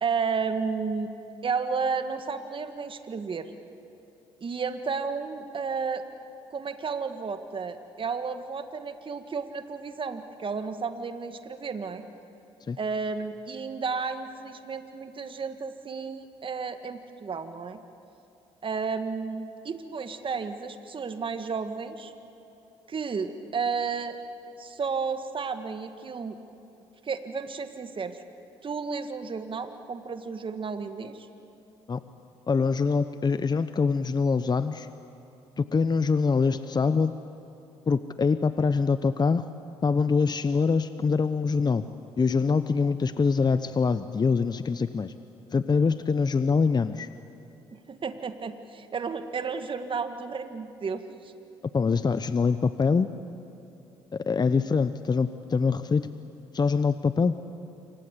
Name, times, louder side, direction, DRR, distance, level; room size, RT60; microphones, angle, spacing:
voice 1, 0.0-1.1 1.4-3.5 4.4-6.0 6.5-12.0 12.8-17.8 18.6-22.1 22.9-24.2 24.6-26.4 27.0-28.2 28.6-31.3 47.7-51.3, right 5 dB, 40° right, 8 dB, 1.7 m, -32 dB
voice 2, 32.5-34.9 35.6-37.1 37.9-39.4 39.8-41.8 42.2-45.1 45.5-47.1 51.7-53.1 54.1-56.1 56.5-57.3, left 5 dB, 30° left, 12 dB, 0.9 m, -24 dB
27.5 x 25.5 x 8.3 m, 2.9 s
hypercardioid pair, 55°, 14 cm